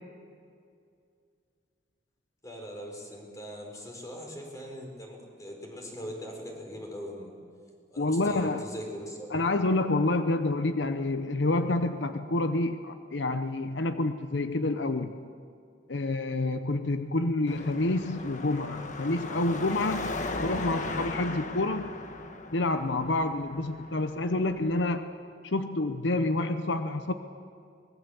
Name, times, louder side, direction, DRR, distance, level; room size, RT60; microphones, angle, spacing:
voice 1, 2.4-7.4 7.9-9.3, equal, 20° left, 1 dB, 4.5 m, -41 dB
voice 2, 8.0-8.6 9.3-15.2 15.9-20.1 20.4-21.9 22.5-25.0 25.4-27.1, left 2 dB, 80° left, 9 dB, 0.9 m, -28 dB
Car passing by / Traffic noise roadway noise / Engine, 17.5-24.8, left 2 dB, 45° left, 1.4 m, -37 dB
23.5 x 20.5 x 7.1 m, 2.4 s
head